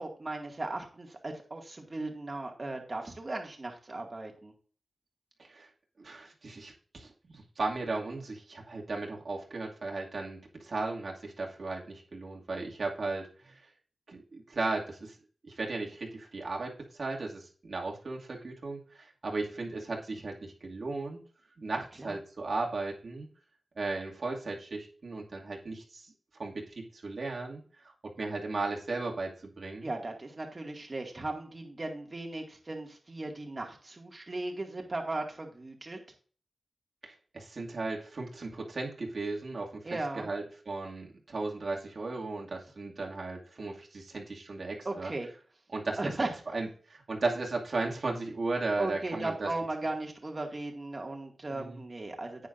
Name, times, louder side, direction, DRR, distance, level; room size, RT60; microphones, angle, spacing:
voice 1, 0.0-4.5 22.0-22.2 29.8-36.0 39.8-40.3 44.8-45.3 46.0-46.3 48.8-52.5, right 2 dB, 40° right, 2 dB, 2.2 m, -37 dB
voice 2, 6.0-13.6 14.1-15.2 15.5-21.2 21.6-23.3 23.8-26.1 26.4-29.9 37.0-39.8 40.1-45.1 45.7-46.1 46.5-49.5 51.5-51.8, right 3 dB, 65° right, -1 dB, 2.4 m, -36 dB
10.0 x 9.1 x 2.6 m, 0.42 s
wide cardioid pair, 65°, 0 cm